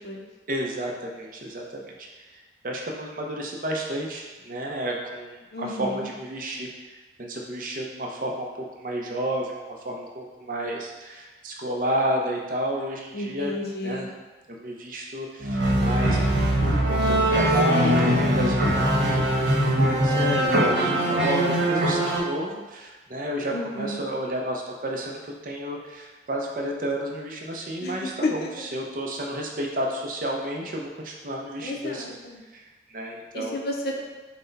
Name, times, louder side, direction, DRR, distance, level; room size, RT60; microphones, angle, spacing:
voice 1, 0.5-2.3 2.6-8.5 8.8-13.5 13.8-14.1 14.6-16.2 16.6-19.5 19.8-32.2 32.5-33.6, right 1 dB, 50° right, 0 dB, 0.6 m, -31 dB
voice 2, 5.5-6.1 13.1-14.1 17.3-18.3 23.5-24.0 27.8-28.3 31.6-32.4 33.3-34.0, left 2 dB, 60° left, 0 dB, 0.6 m, -32 dB
sound 1, 15.4-22.2, right 1 dB, 90° right, 1.1 m, -22 dB
6.1 x 2.2 x 3.9 m, 1.2 s
head